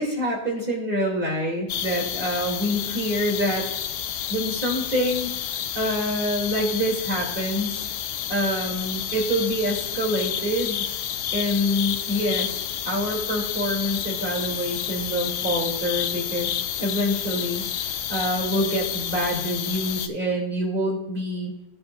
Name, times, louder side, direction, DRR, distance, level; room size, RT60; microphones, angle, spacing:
voice 1, 0.0-3.6 4.3-7.9 8.3-10.8 11.3-21.5, equal, 35° right, -2 dB, 2.3 m, -26 dB
sound 1, 1.7-20.1, left 9 dB, 80° left, 1.2 m, -30 dB
14.0 x 7.3 x 2.3 m, 0.90 s
omnidirectional pair, 1.7 m